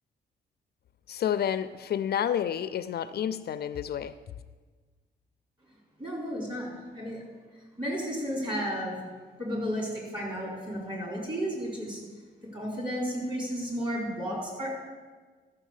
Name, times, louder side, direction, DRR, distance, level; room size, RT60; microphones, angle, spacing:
voice 1, 1.1-4.1, left 9 dB, 60° left, 12 dB, 0.4 m, -30 dB
voice 2, 6.0-7.2 7.8-9.0 9.4-12.0 12.5-14.8, equal, 25° right, -3 dB, 4.2 m, -33 dB
13.0 x 6.6 x 7.3 m, 1.4 s
wide cardioid pair, 155°, 19 cm